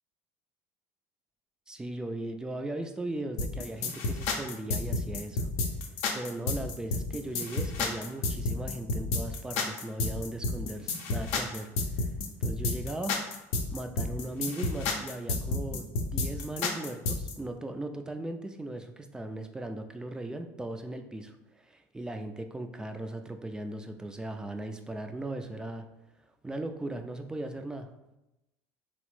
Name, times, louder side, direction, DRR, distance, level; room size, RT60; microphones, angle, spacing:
voice 1, 1.7-5.5 6.1-12.1 12.4-13.2 13.7-25.8 26.4-27.9, right 2 dB, 10° right, 6 dB, 0.3 m, -38 dB
sound 1, 3.4-17.3, left 3 dB, 75° left, 0.5 m, -30 dB
3.3 x 2.0 x 3.0 m, 0.95 s
supercardioid pair, 90°, 8 cm